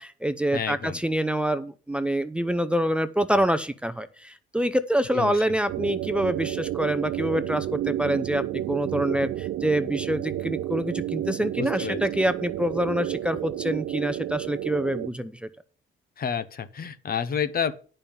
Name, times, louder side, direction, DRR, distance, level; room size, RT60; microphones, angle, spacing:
voice 1, 0.0-15.4, right 1 dB, 5° right, 11 dB, 0.6 m, -26 dB
voice 2, 0.5-1.0 5.1-5.4 11.6-12.0 16.2-17.7, left 7 dB, 50° left, 13 dB, 1.0 m, -29 dB
sound 1, 5.7-15.1, right 13 dB, 80° right, 0.4 m, -31 dB
9.0 x 5.5 x 7.1 m, 0.40 s
cardioid pair, 90°, 20 cm